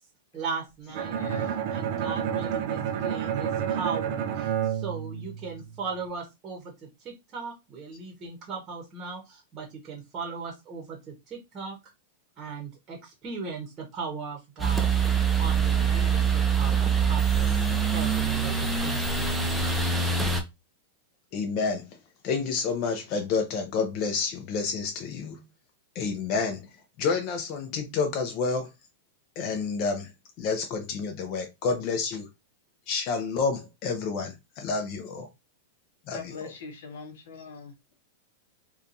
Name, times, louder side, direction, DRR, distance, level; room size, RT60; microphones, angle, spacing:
voice 1, 0.3-1.2 1.7-6.7 7.0-11.0 11.3-11.7 12.4-14.9 15.4-19.3, right 5 dB, 30° right, 0.8 m, -38 dB
Bowed string instrument, 0.9-5.9, right 9 dB, 55° right, 0.5 m, -30 dB
voice 2, 1.0-1.6 15.6-16.4 36.1-37.7, left 3 dB, 75° left, 0.7 m, -42 dB
sound 1, 14.6-20.4, right 6 dB, 5° right, 0.5 m, -24 dB
voice 3, 21.3-21.9 22.2-25.4 26.0-26.6 27.0-28.7 29.4-30.1 30.4-32.3 32.9-35.3 36.1-36.3, left 5 dB, 45° left, 0.5 m, -29 dB
2.7 x 2.3 x 2.5 m
supercardioid pair, 135°, 0 cm